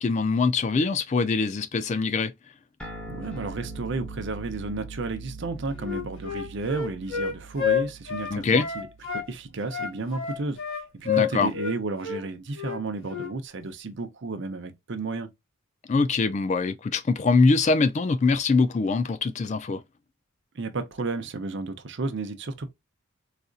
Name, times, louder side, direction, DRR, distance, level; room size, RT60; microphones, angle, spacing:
voice 1, 0.0-2.3 8.3-8.7 11.1-11.5 15.9-19.8, left 4 dB, 35° left, 0.3 m, -23 dB
sound 1, 2.8-9.6, right 3 dB, 5° left, 0.9 m, -42 dB
voice 2, 3.1-8.9 9.1-15.3 20.5-22.7, right 3 dB, 60° right, 0.6 m, -32 dB
Wind instrument woodwind instrument, 5.8-9.3 9.7-11.8 12.0-12.2 12.5-12.8 13.1-13.3, left 7 dB, 70° left, 1.6 m, -29 dB
4.1 x 2.5 x 2.3 m
head